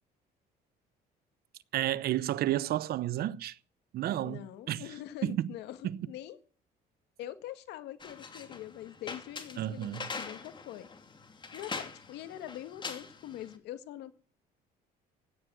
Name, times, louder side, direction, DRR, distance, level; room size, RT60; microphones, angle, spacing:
voice 1, 1.7-3.6 3.9-4.8 5.2-5.5 9.6-10.1, right 13 dB, 65° right, 0.9 m, -31 dB
voice 2, 4.2-6.4 7.2-10.9 11.5-14.1, left 12 dB, 85° left, 1.9 m, -44 dB
sound 1, 8.0-13.5, left 4 dB, 30° left, 2.7 m, -43 dB
16.5 x 10.0 x 6.3 m
cardioid pair, 110°, 17 cm